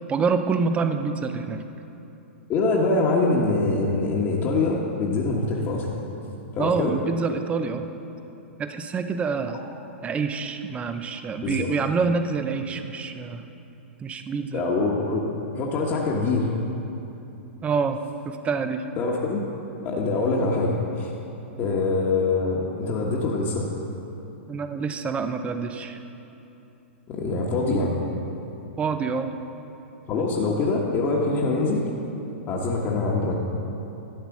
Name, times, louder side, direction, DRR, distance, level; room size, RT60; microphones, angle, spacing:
voice 1, 0.1-1.6 6.6-7.9 8.6-9.6 10.0-13.4 14.0-14.6 17.6-18.0 18.2-18.9 21.6-21.7 24.5-26.0 28.8-29.4, right 5 dB, 20° right, 8 dB, 0.7 m, -26 dB
voice 2, 2.5-6.0 6.5-6.9 11.4-11.7 14.5-15.2 15.5-16.5 19.0-19.4 19.8-21.1 21.6-23.7 27.1-28.0 30.1-31.9 32.5-33.4, left 3 dB, 35° left, -3 dB, 1.4 m, -24 dB
12.5 x 8.2 x 6.0 m, 2.9 s
hypercardioid pair, 115°, 7 cm